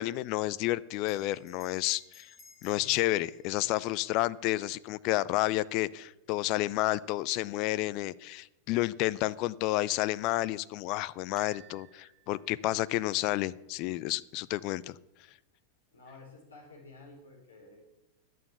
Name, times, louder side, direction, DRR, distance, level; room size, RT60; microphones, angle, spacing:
voice 1, 0.0-2.3 2.6-15.0, left 17 dB, 40° left, 18 dB, 0.4 m, -30 dB
Bell, 1.1-5.9, left 4 dB, 20° left, 2.0 m, -60 dB
sound 1, 11.4-13.3, right 6 dB, 5° right, 2.4 m, -57 dB
voice 2, 15.9-17.8, left 3 dB, 75° left, 0 dB, 4.2 m, -52 dB
11.0 x 9.0 x 6.9 m, 0.92 s
figure-of-eight pair, 90°, 0 cm